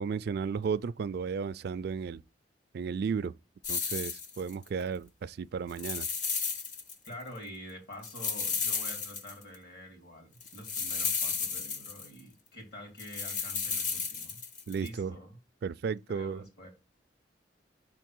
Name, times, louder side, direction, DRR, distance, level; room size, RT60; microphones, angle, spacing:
voice 1, 0.0-2.2 2.7-3.3 3.7-6.1 14.7-15.1 15.6-16.4, right 6 dB, 60° right, 0.3 m, -34 dB
sound 1, 3.6-4.7 5.7-7.1 7.4-7.5 8.0-9.6 10.4-12.2 13.0-14.9, left 5 dB, 45° left, 0.9 m, -33 dB
voice 2, 7.0-14.4 14.8-15.4 16.1-16.7, equal, 60° left, 3.1 m, -47 dB
5.2 x 4.5 x 6.0 m
head